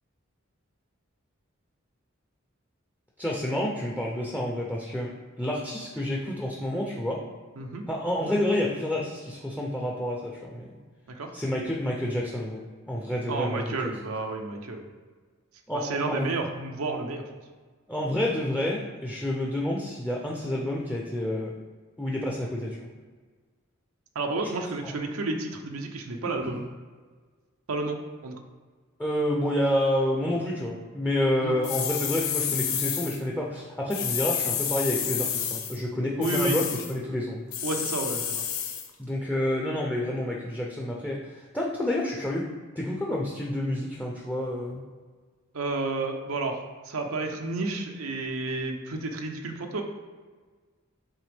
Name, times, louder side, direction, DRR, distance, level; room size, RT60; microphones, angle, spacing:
voice 1, 3.2-5.1 5.4-7.2 7.9-10.7 11.3-13.6 15.7-16.3 17.9-21.5 22.0-22.9 24.8-24.9 26.4-26.5 29.0-37.4 39.0-42.5 42.8-44.8, left 1 dB, 5° left, -2 dB, 0.5 m, -29 dB
voice 2, 13.3-14.9 15.7-17.2 24.1-26.7 27.7-28.3 31.4-31.6 36.2-36.6 37.6-38.4 45.5-49.8, right 3 dB, 90° right, 3 dB, 0.7 m, -31 dB
sound 1, 31.6-33.2 33.9-35.8 36.2-36.9 37.5-38.9, left 8 dB, 80° left, 0.7 m, -30 dB
8.1 x 3.4 x 3.4 m, 1.5 s
head